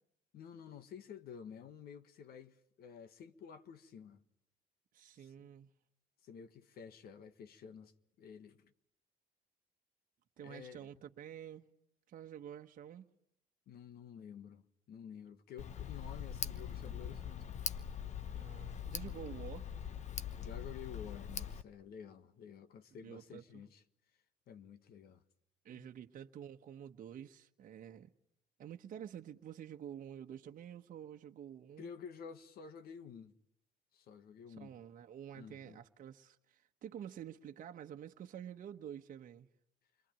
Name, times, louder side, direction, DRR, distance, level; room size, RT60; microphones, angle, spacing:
voice 1, 0.3-4.2 5.1-5.5 6.2-8.7 10.4-10.9 13.7-17.7 20.4-23.8 24.5-25.2 25.7-25.9 31.8-33.3 33.9-34.7 35.3-35.8, left 7 dB, 65° left, 1.6 m, -51 dB
voice 2, 4.9-5.7 10.4-11.7 12.1-13.1 18.3-19.7 23.0-23.6 25.6-28.1 28.6-31.9 34.6-39.5, right 9 dB, 55° right, 1.2 m, -49 dB
Tick, 15.6-21.6, left 8 dB, 45° left, 1.1 m, -42 dB
28.5 x 22.5 x 9.0 m
cardioid pair, 110°, 17 cm